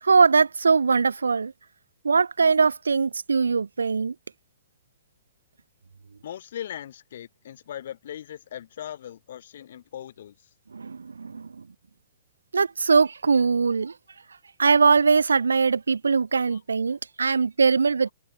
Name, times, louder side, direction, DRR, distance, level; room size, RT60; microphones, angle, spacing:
voice 1, 0.0-1.5 2.0-4.1 10.7-11.7 12.5-13.9 14.6-18.1, right 5 dB, 80° right, 1.1 m, -21 dB
voice 2, 6.2-10.3 16.5-16.6 17.2-17.4, left 10 dB, 60° left, 3.3 m, -39 dB
figure-of-eight pair, 120°, 0 cm